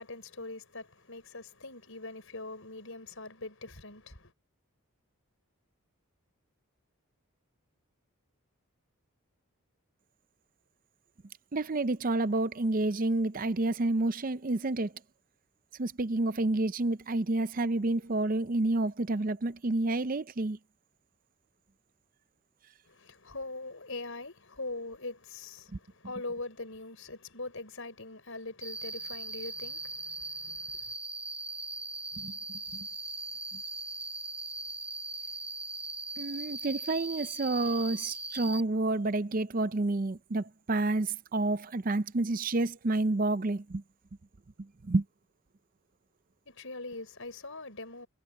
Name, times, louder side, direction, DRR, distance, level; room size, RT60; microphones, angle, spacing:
voice 1, 0.0-4.3 22.9-30.9 46.5-48.1, left 2 dB, 65° left, 5.6 m, -42 dB
voice 2, 11.5-14.9 15.8-20.6 32.2-32.3 32.7-32.9 36.2-43.8 44.6-45.0, right 2 dB, 40° right, 0.5 m, -29 dB
Cricket, 28.6-38.6, right 2 dB, 5° right, 0.9 m, -39 dB
head